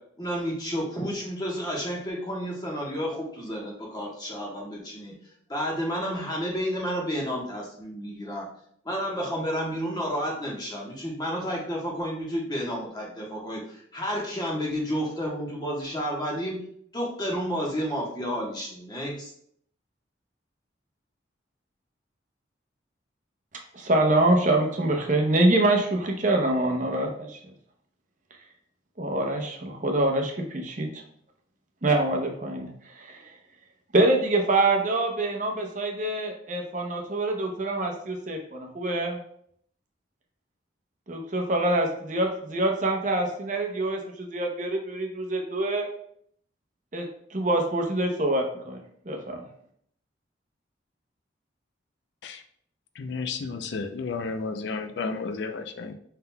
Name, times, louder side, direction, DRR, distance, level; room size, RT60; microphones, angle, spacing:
voice 1, 0.2-5.1 5.5-8.5 8.8-16.6 16.9-19.3, equal, 20° left, -3 dB, 1.1 m, -31 dB
voice 2, 23.7-27.4 29.0-31.0 31.8-32.7 32.9-33.2 33.9-39.2 41.1-45.9 46.9-47.0 47.3-48.8 49.1-49.5, right 2 dB, 40° right, 2 dB, 0.7 m, -25 dB
voice 3, 52.9-55.9, left 4 dB, 70° left, 7 dB, 0.4 m, -32 dB
5.5 x 3.8 x 2.2 m, 0.65 s
head